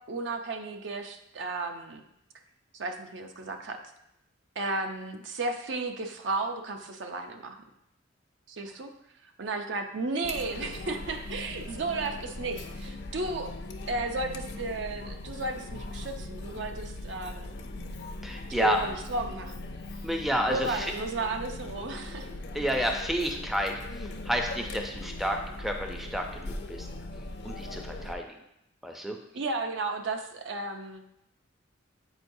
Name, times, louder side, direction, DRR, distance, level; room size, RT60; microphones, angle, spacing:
voice 1, 0.1-2.0 2.7-3.8 4.6-7.6 8.5-8.9 9.4-13.5 13.9-17.5 18.5-19.6 20.5-22.3 29.3-31.0, right 3 dB, 65° right, 5 dB, 0.6 m, -34 dB
Chatter, 10.2-28.1, left 2 dB, 55° left, 0.5 m, -40 dB
voice 2, 18.2-18.8 20.0-20.9 22.5-26.9 27.4-28.3 28.8-29.2, equal, ahead, 3 dB, 0.4 m, -30 dB
7.9 x 4.5 x 2.6 m, 0.80 s
head